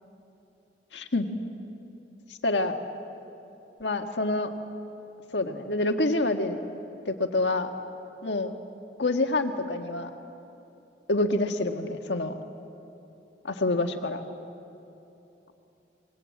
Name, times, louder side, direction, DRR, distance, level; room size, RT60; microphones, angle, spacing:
voice 1, 0.9-1.3 2.4-2.7 3.8-4.5 5.3-6.6 7.1-7.7 8.2-8.5 9.0-10.1 11.1-12.4 13.4-14.2, left 2 dB, 75° left, 5 dB, 1.6 m, -27 dB
25.0 x 22.0 x 8.7 m, 2.9 s
head